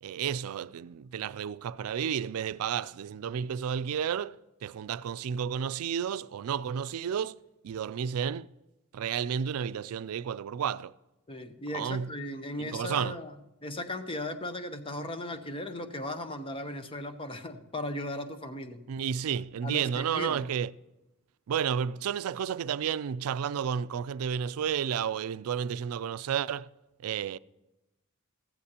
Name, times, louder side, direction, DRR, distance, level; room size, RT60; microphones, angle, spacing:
voice 1, 0.0-7.4 7.6-8.5 8.9-10.9 11.7-12.1 12.6-13.2 18.9-20.7 21.5-26.7 27.0-27.4, right 8 dB, 80° right, 0.3 m, -32 dB
voice 2, 11.3-13.3 13.6-18.8 19.6-20.5, left 1 dB, 25° left, 0.8 m, -37 dB
15.0 x 14.5 x 2.9 m
head